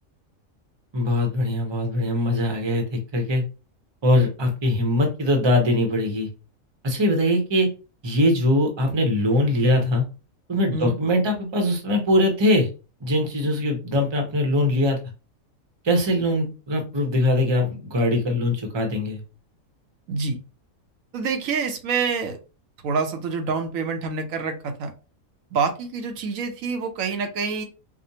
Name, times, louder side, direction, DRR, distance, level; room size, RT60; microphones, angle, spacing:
voice 1, 0.9-3.4 4.0-6.3 6.8-7.7 8.0-10.0 10.5-12.7 13.0-15.0 15.8-19.2, left 1 dB, 25° right, 3 dB, 0.7 m, -22 dB
voice 2, 21.1-22.4 22.8-24.9 25.5-27.7, right 5 dB, 75° right, 5 dB, 1.1 m, -26 dB
4.9 x 2.1 x 2.7 m, 0.32 s
omnidirectional pair, 1.4 m